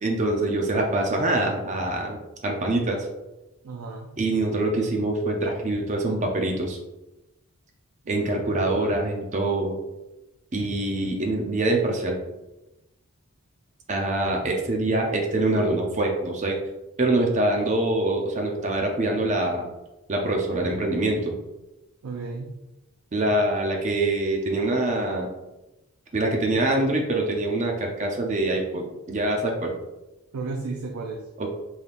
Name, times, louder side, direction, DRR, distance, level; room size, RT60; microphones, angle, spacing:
voice 1, 0.0-3.1 4.2-6.8 8.1-9.8 10.5-12.2 13.9-16.6 17.0-19.7 20.1-21.3 23.1-25.3 26.1-29.7 31.4-31.5, right 2 dB, 35° right, 1 dB, 0.5 m, -24 dB
voice 2, 3.6-4.2 8.0-8.5 22.0-22.6 30.3-31.3, right 3 dB, 80° right, 1 dB, 0.4 m, -34 dB
4.0 x 3.4 x 2.5 m, 0.98 s
head